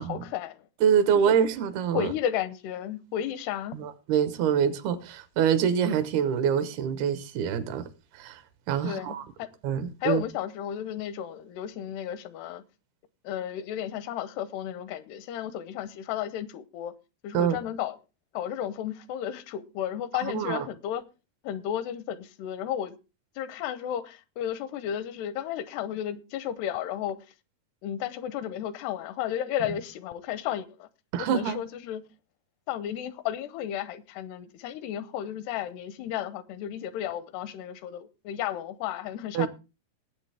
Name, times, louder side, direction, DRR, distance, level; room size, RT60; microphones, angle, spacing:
voice 1, 0.0-0.7 1.2-1.3 1.9-3.8 8.8-9.5 10.0-12.6 13.2-16.9 17.2-18.0 18.3-21.0 21.4-23.0 23.4-27.2 27.8-30.9 31.2-32.0 32.7-39.5, left 10 dB, 85° left, 2.9 m, -33 dB
voice 2, 0.8-2.1 3.7-7.8 8.1-8.4 8.7-9.3 9.6-10.2 17.3-17.6 20.2-20.7 31.1-31.6 39.3-39.5, right 8 dB, 75° right, 2.9 m, -25 dB
19.5 x 8.0 x 3.4 m
omnidirectional pair, 4.6 m